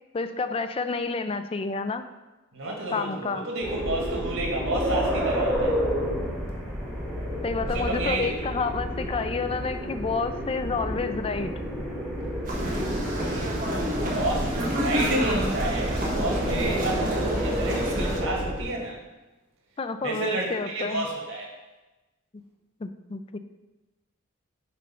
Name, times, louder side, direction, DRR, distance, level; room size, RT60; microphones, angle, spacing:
voice 1, 0.1-2.0 2.9-3.5 7.4-11.5 19.8-21.1 22.8-23.4, left 4 dB, 30° left, 9 dB, 0.4 m, -29 dB
voice 2, 2.5-5.8 7.6-8.6 13.1-19.0 20.0-21.5, right 2 dB, 90° right, -1 dB, 1.9 m, -31 dB
sound 1, 3.6-18.6, equal, ahead, 1.4 m, -30 dB
sound 2, 12.4-18.2, equal, 40° right, 1.4 m, -28 dB
6.4 x 4.1 x 5.5 m, 1.1 s
head